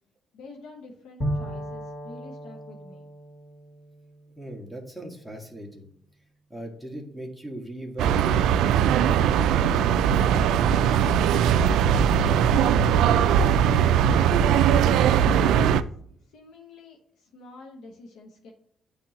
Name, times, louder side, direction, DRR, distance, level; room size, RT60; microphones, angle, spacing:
voice 1, 0.3-3.0 12.1-13.2 13.6-15.6 16.3-18.5, left 2 dB, 85° left, 0 dB, 1.1 m, -46 dB
Bowed string instrument, 1.2-4.9, right 1 dB, 25° left, 2.9 m, -35 dB
voice 2, 4.4-5.9 6.5-10.3, right 1 dB, ahead, 1 dB, 1.7 m, -39 dB
sound 1, 8.0-15.8, right 8 dB, 85° right, 0.3 m, -20 dB
9.7 x 3.5 x 3.0 m, 0.65 s
cardioid pair, 90°, 0 cm